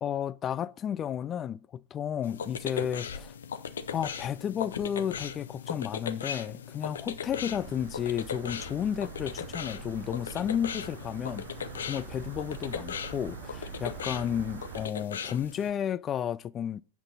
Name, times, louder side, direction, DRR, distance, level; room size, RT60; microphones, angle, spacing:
voice 1, 0.0-3.3 3.9-11.4 11.8-16.8, left 9 dB, 25° left, 0.3 m, -32 dB
sound 1, 2.2-15.7, left 7 dB, 65° left, 0.6 m, -38 dB
sound 2, 7.3-14.9, right 9 dB, 45° right, 0.6 m, -44 dB
8.0 x 5.8 x 5.6 m
figure-of-eight pair, 90°, 0 cm